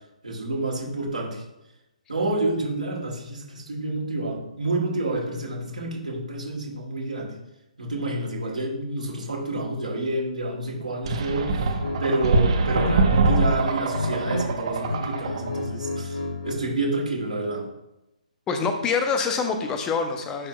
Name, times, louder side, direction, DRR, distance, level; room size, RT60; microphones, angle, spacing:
voice 1, 0.2-1.4 2.1-7.3 7.8-11.7 12.0-17.7, right 2 dB, 70° right, -2 dB, 2.2 m, -29 dB
sound 1, 11.1-15.6, right 3 dB, 45° right, 0.7 m, -24 dB
sound 2, 11.8-12.0 12.4-13.5 13.8-14.4 14.7-16.6, left 2 dB, 65° left, 1.6 m, -30 dB
voice 2, 18.5-20.5, left 5 dB, 15° left, 6 dB, 0.6 m, -25 dB
9.5 x 4.5 x 2.2 m, 0.92 s
figure-of-eight pair, 135°, 4 cm